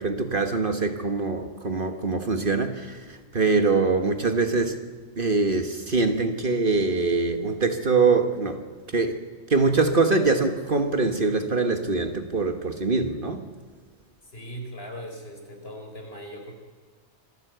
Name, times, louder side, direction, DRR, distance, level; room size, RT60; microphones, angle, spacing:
voice 1, 0.0-4.8 5.2-8.6 8.9-9.2 9.5-13.4, right 3 dB, 45° right, 7 dB, 1.5 m, -23 dB
voice 2, 14.2-16.6, equal, 55° left, 2 dB, 4.5 m, -39 dB
26.0 x 15.0 x 8.0 m, 1.5 s
omnidirectional pair, 1.3 m